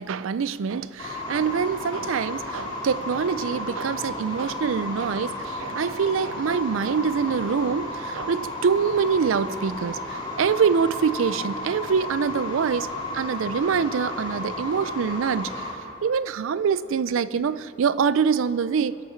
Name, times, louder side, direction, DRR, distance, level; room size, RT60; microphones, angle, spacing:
voice 1, 0.0-15.7 16.0-18.9, right 6 dB, 70° right, 0.4 m, -25 dB
sound 1, 1.0-15.7, left 1 dB, 25° left, 3.0 m, -33 dB
24.0 x 8.5 x 4.5 m
head